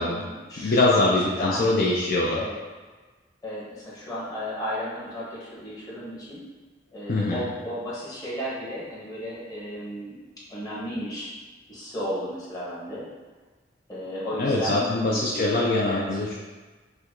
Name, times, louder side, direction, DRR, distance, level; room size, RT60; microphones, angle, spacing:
voice 1, 0.0-1.8 2.3-2.5 3.4-6.4 6.9-11.3 11.7-13.0 13.9-16.1, equal, 20° left, -8 dB, 1.3 m, -34 dB
voice 2, 0.6-2.4 7.1-7.5 14.4-16.4, left 2 dB, 55° left, -3 dB, 0.5 m, -23 dB
5.6 x 2.2 x 3.8 m, 1.3 s
head